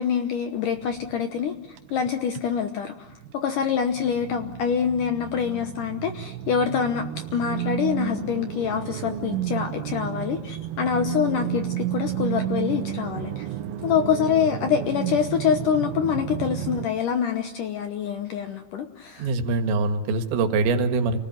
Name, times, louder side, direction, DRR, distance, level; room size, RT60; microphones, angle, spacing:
voice 1, 0.0-7.0 7.3-13.5 13.8-19.3, left 7 dB, 70° left, 7 dB, 2.0 m, -25 dB
sound 1, 0.7-3.3 3.6-16.9, right 12 dB, 65° right, 2.5 m, -32 dB
voice 2, 19.2-21.2, right 3 dB, 90° right, 7 dB, 3.9 m, -23 dB
28.5 x 19.5 x 9.4 m, 1.0 s
omnidirectional pair, 5.1 m